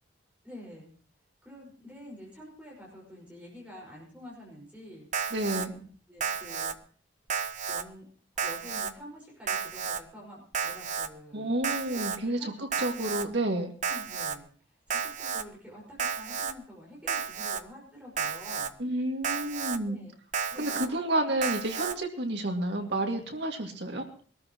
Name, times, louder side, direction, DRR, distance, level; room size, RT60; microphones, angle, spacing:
voice 1, 0.4-0.9 1.4-5.1 5.4-6.8 7.7-8.1 8.4-11.6 11.9-12.9 13.9-18.7 19.8-20.1 20.5-21.1, equal, 5° right, -3 dB, 5.4 m, -48 dB
Alarm, 5.1-5.7 6.2-6.7 7.3-7.8 8.4-8.9 9.5-10.0 10.5-11.1 11.6-12.2 12.7-13.3 13.8-14.4 14.9-15.4 16.0-16.5 17.1-17.6 18.2-18.7 19.2-19.8 20.3-20.9 21.4-21.9, right 6 dB, 40° right, 0.7 m, -32 dB
voice 2, 5.3-5.7 11.3-13.7 18.8-20.0 20.6-24.0, right 1 dB, 65° right, 2 dB, 2.3 m, -30 dB
22.5 x 13.5 x 3.1 m, 0.42 s
head